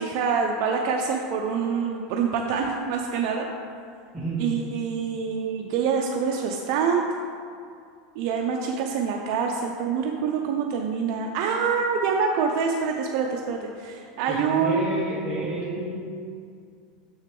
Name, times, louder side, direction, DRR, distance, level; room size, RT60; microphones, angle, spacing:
voice 1, 0.0-3.5 4.4-7.1 8.2-14.8, right 6 dB, 55° right, 1 dB, 0.5 m, -26 dB
voice 2, 14.3-16.0, right 2 dB, 15° right, -8 dB, 1.1 m, -30 dB
6.7 x 6.2 x 3.7 m, 2.3 s
supercardioid pair, 140°, 4 cm